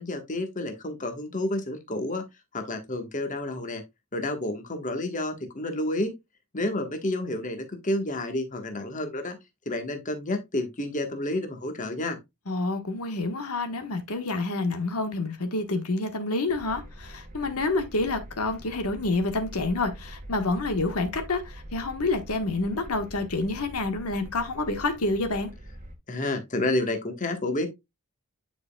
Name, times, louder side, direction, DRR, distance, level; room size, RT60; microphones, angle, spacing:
voice 1, 0.0-2.2 2.5-3.8 4.1-6.1 6.5-9.4 9.6-12.2 26.1-27.7, left 1 dB, 35° left, 1.3 m, -30 dB
voice 2, 12.5-25.5, left 2 dB, 80° left, 1.3 m, -28 dB
sound 1, 16.5-25.9, right 1 dB, 35° right, 1.2 m, -44 dB
9.5 x 5.0 x 2.2 m
head